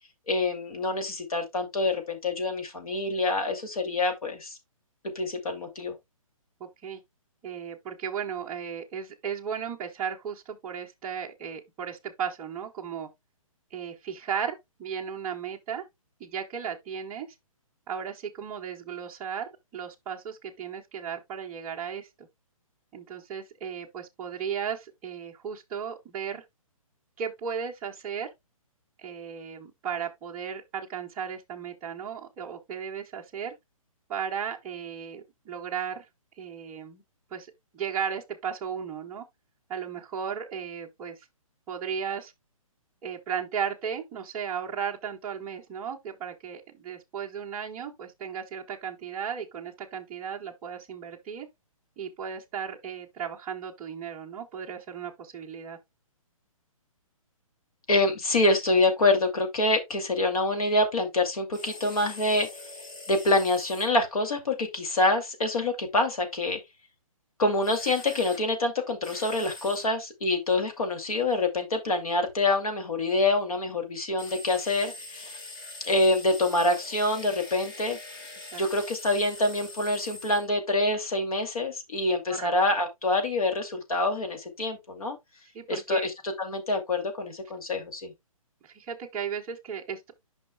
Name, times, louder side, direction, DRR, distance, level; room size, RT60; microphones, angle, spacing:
voice 1, 0.3-4.6 5.1-5.9 57.9-62.5 63.1-66.6 67.4-75.4 75.8-78.0 78.5-85.2 85.7-88.1, left 2 dB, 80° left, 2.5 m, -26 dB
voice 2, 6.6-7.0 7.4-13.1 13.7-15.8 16.2-17.3 17.9-22.3 22.9-26.4 27.2-28.3 29.0-33.5 34.1-36.1 36.4-37.0 37.3-37.5 37.7-39.3 39.7-41.2 41.7-42.3 43.0-51.5 52.0-55.8 78.5-78.6 82.3-82.5 85.5-86.1 88.6-90.1, right 7 dB, 10° right, 0.5 m, -35 dB
sound 1, 61.5-63.9 67.6-68.4 69.0-69.9 74.2-80.5, left 2 dB, 35° left, 1.7 m, -43 dB
9.3 x 5.4 x 2.3 m
hypercardioid pair, 165°, 18 cm